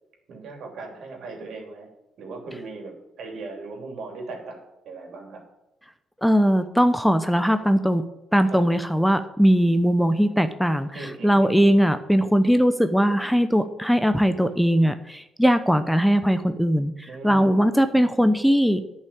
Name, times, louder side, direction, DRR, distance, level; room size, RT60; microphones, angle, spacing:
voice 1, 0.3-1.9 2.2-5.4 8.5-8.7 10.9-11.6 17.1-17.7, right 3 dB, 70° right, 2 dB, 3.1 m, -38 dB
voice 2, 6.2-8.0 8.3-18.8, equal, ahead, 10 dB, 0.7 m, -20 dB
10.5 x 5.7 x 8.7 m, 0.93 s
cardioid pair, 90°, 0 cm